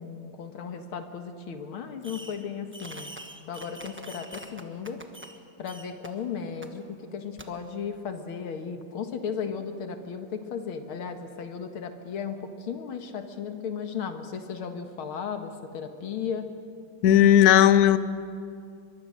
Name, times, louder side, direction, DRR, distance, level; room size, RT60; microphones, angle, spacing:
voice 1, 0.0-3.1 3.5-5.0 5.6-16.5, left 6 dB, 85° left, 6 dB, 2.3 m, -35 dB
Fireworks, 2.0-2.5 2.7-5.4 5.6-6.1 6.6-6.7 7.4-7.5, right 1 dB, 10° right, 0.8 m, -44 dB
voice 2, 17.0-18.0, left 11 dB, 60° left, 14 dB, 1.1 m, -16 dB
23.0 x 23.0 x 6.5 m, 2.4 s
omnidirectional pair, 2.2 m